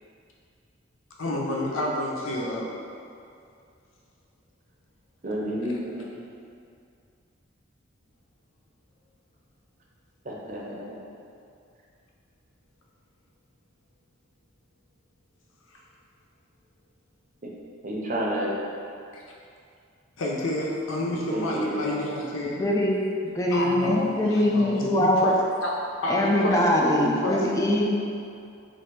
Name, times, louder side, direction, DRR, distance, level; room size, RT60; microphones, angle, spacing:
voice 1, 1.2-2.7 5.7-5.8 15.7-15.8 19.1-19.2 20.2-22.6 23.5-25.3 25.6-25.7 26.0-27.5, left 1 dB, 85° left, -3 dB, 0.6 m, -29 dB
voice 2, 5.2-6.2 10.2-11.0 17.4-17.5 17.8-18.6 21.3-21.8, right 1 dB, 40° right, -3 dB, 0.6 m, -30 dB
voice 3, 22.5-23.0 23.2-25.3 26.1-27.9, left 1 dB, 15° left, -2 dB, 0.3 m, -22 dB
3.2 x 2.6 x 4.5 m, 2.4 s
head